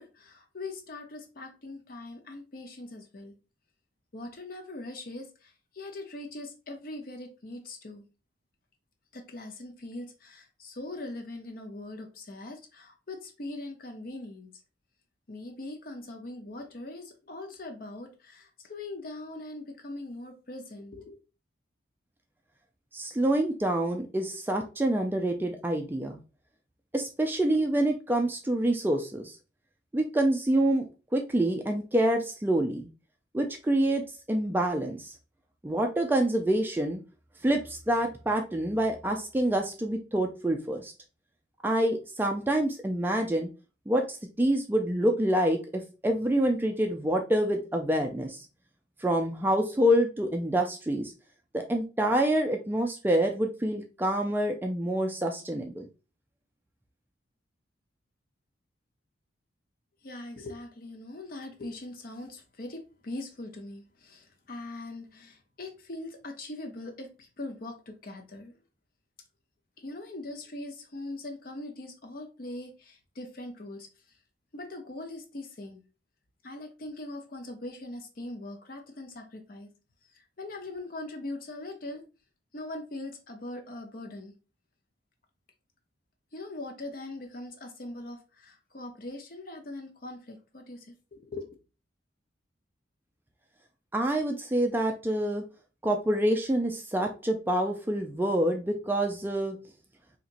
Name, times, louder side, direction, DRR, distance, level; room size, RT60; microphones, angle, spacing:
voice 1, 0.0-3.3 4.1-8.0 9.1-14.5 15.3-21.2 60.0-68.6 69.8-74.2 74.5-75.8 76.4-79.7 80.1-82.0 82.5-84.3 86.3-91.6, left 2 dB, 45° left, 0.7 m, -41 dB
voice 2, 22.9-26.2 26.9-29.4 29.9-32.9 33.3-34.0 34.3-35.1 35.6-37.0 37.4-40.9 41.6-43.5 43.9-48.5 49.0-51.1 51.5-55.9 93.9-95.4 95.8-99.6, right 1 dB, 10° right, 0.3 m, -27 dB
4.1 x 2.9 x 2.5 m
head